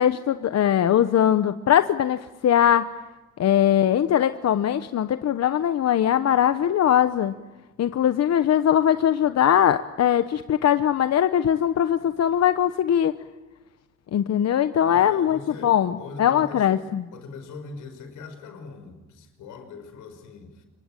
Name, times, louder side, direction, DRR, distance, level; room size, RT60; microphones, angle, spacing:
voice 1, 0.0-2.9 3.4-7.3 7.8-13.1 14.1-17.1, left 10 dB, 60° left, 11 dB, 1.0 m, -21 dB
voice 2, 14.9-16.7 17.1-20.6, left 4 dB, 85° left, 7 dB, 5.3 m, -41 dB
27.0 x 24.0 x 9.0 m, 1.1 s
cardioid pair, 90°, 30 cm